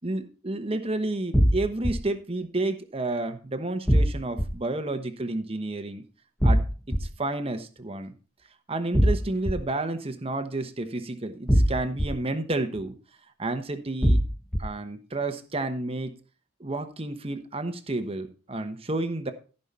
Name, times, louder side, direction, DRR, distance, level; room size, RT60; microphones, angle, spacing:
voice 1, 0.0-6.0 6.4-6.6 7.0-8.1 8.7-12.9 13.4-14.2 14.6-16.2 16.6-19.3, right 2 dB, 30° right, 8 dB, 1.0 m, -30 dB
sound 1, 1.3-1.9 3.9-4.5 6.4-7.0 8.9-9.5 11.5-12.1 14.0-14.6, equal, 5° left, 1.1 m, -20 dB
14.5 x 5.5 x 4.2 m, 0.36 s
head